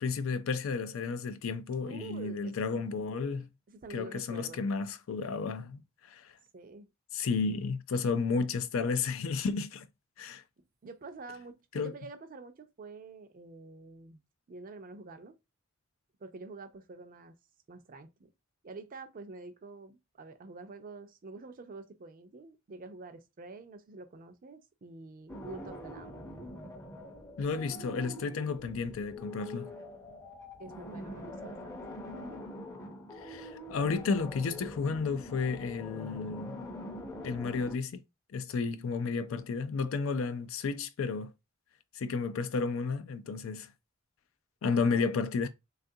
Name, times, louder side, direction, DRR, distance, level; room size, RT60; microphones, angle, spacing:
voice 1, 0.0-3.5 3.9-5.8 6.1-6.2 7.1-9.9 10.2-10.4 11.7-11.9 27.4-29.7 33.2-36.6 37.2-38.0 38.3-41.3 42.0-43.7 44.6-45.5, left 4 dB, 70° left, 0.4 m, -32 dB
voice 2, 1.9-2.6 3.7-4.6 6.5-6.9 10.8-14.2 14.5-15.4 16.2-17.3 17.7-18.3 18.6-26.2 30.6-31.8 32.1-32.4 44.7-45.0, right 3 dB, 45° right, 0.5 m, -47 dB
sound 1, 25.3-37.8, left 1 dB, 15° left, 0.6 m, -44 dB
3.5 x 2.4 x 2.7 m
head